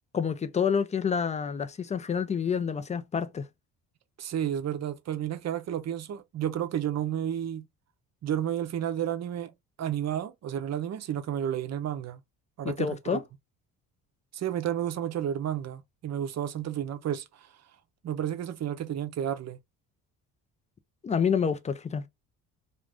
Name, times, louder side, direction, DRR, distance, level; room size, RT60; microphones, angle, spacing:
voice 1, 0.1-3.5 12.6-13.2 21.0-22.0, left 6 dB, 20° left, 0.3 m, -28 dB
voice 2, 4.2-7.7 8.2-9.5 9.8-12.2 12.6-13.2 14.3-17.5 18.0-19.6, right 10 dB, 45° right, 0.6 m, -31 dB
2.5 x 2.5 x 3.3 m
cardioid pair, 85°, 39 cm